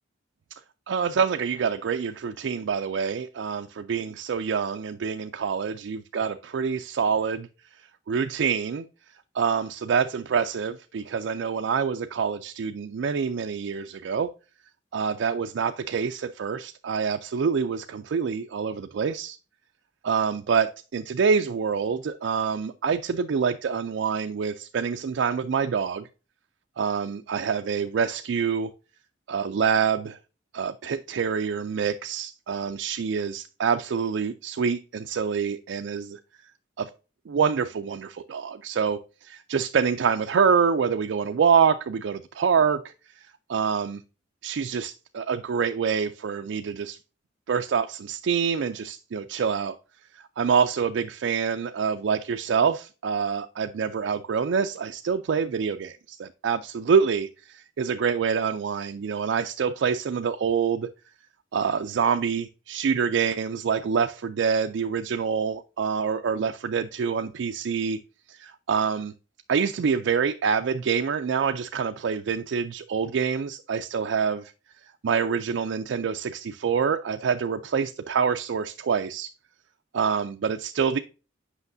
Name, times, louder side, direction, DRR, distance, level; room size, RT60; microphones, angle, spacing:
voice 1, 0.9-7.5 8.1-8.9 9.3-14.3 14.9-19.4 20.0-26.1 26.8-28.7 29.3-30.2 30.5-36.2 36.8-36.9 37.3-42.8 43.2-44.0 44.4-47.0 47.5-49.8 50.1-60.9 61.5-68.0 68.3-69.1 69.5-74.5 75.0-79.3 79.9-81.0, right 6 dB, 65° right, 0.3 m, -26 dB
8.1 x 5.6 x 2.6 m
head